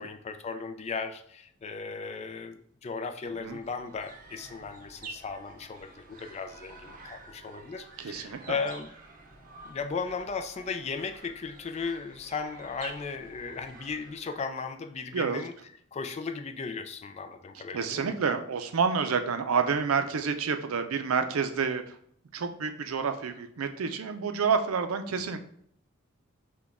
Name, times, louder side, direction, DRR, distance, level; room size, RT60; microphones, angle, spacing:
voice 1, 0.0-8.9 9.6-15.5 15.9-18.1, left 5 dB, 30° left, 8 dB, 0.3 m, -36 dB
sound 1, 3.1-14.7, right 3 dB, 40° right, 0.6 m, -49 dB
voice 2, 8.0-8.6 15.1-15.4 17.5-22.0 22.3-25.4, right 5 dB, 85° right, 8 dB, 0.5 m, -29 dB
5.9 x 2.2 x 3.5 m, 0.65 s
head